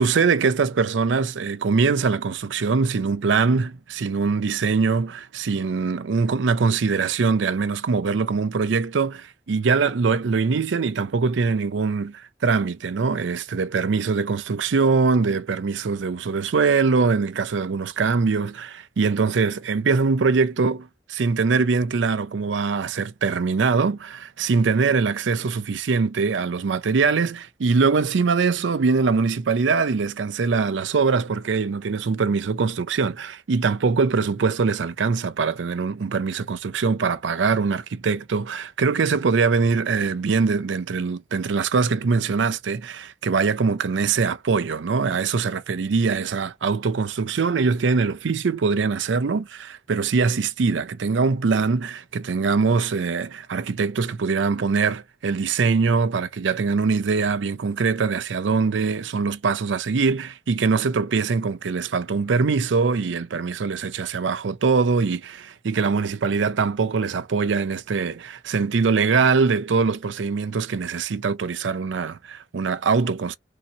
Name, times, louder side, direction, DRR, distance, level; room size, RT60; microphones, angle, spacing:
voice 1, 0.0-73.4, right 4 dB, 90° right, 0.5 m, -22 dB
3.4 x 2.8 x 4.0 m
head